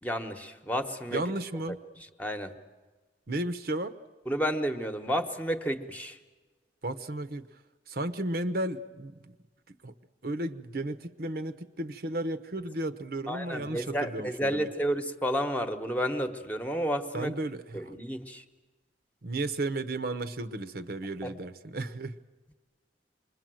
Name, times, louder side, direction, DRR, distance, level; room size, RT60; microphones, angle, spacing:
voice 1, 0.0-1.2 1.7-2.5 4.3-6.2 13.3-17.3 17.7-18.4 21.2-21.3, equal, 10° left, 6 dB, 1.2 m, -31 dB
voice 2, 1.1-1.8 3.3-4.0 6.8-7.4 7.9-9.3 9.7-9.9 10.2-14.7 17.1-17.9 19.2-22.2, right 2 dB, 55° right, 10 dB, 0.9 m, -34 dB
26.5 x 22.0 x 7.7 m, 1.3 s
head